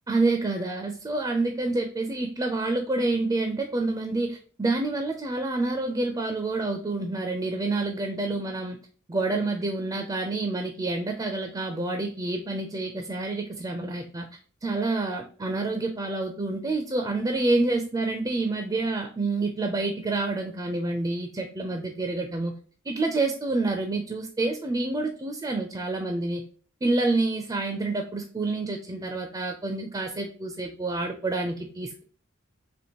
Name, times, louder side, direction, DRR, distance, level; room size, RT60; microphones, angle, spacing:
voice 1, 0.1-8.8 9.1-14.3 14.6-22.5 22.9-26.4 26.8-32.0, right 2 dB, 20° right, 4 dB, 0.4 m, -28 dB
4.3 x 2.9 x 2.9 m, 0.43 s
head